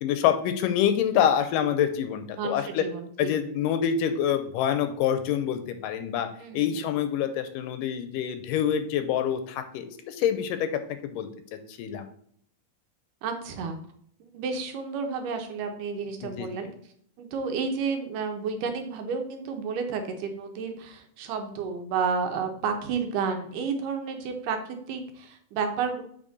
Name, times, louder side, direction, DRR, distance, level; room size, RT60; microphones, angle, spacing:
voice 1, 0.0-2.8 3.2-6.3 6.5-10.7 11.0-11.3 11.7-12.1 16.2-16.5, left 9 dB, 80° left, 8 dB, 2.1 m, -26 dB
voice 2, 2.4-3.3 6.4-6.9 13.2-13.8 14.3-16.7 17.2-26.0, right 5 dB, 75° right, 5 dB, 2.4 m, -31 dB
7.4 x 5.0 x 4.0 m, 0.64 s
omnidirectional pair, 4.0 m